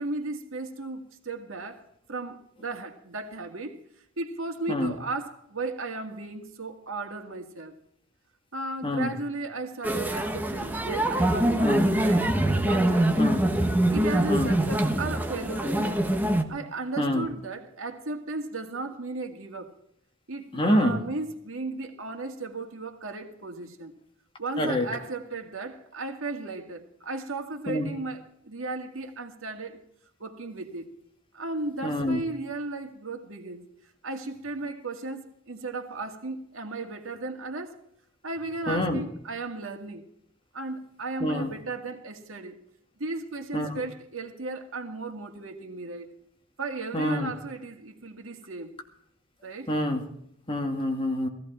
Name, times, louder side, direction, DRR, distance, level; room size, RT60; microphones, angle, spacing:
voice 1, 0.0-1.8 2.1-3.8 4.2-7.7 8.5-13.3 13.9-16.0 16.5-19.7 20.3-23.9 24.4-29.8 30.2-30.9 31.3-33.7 34.0-37.8 38.2-40.0 40.5-42.6 43.0-46.1 46.6-48.7 49.4-49.7, right 3 dB, 90° right, 2.0 m, -35 dB
voice 2, 8.8-9.1 11.6-11.9 13.2-13.4 14.3-14.5 17.0-17.3 20.5-21.0 24.6-24.9 27.7-27.9 31.8-32.2 38.7-39.0 41.2-41.5 43.5-43.8 46.9-47.3 49.7-50.1 50.5-51.3, left 1 dB, 25° left, 2.5 m, -26 dB
sound 1, 9.8-16.4, right 1 dB, 10° right, 1.3 m, -24 dB
17.5 x 15.5 x 4.5 m
head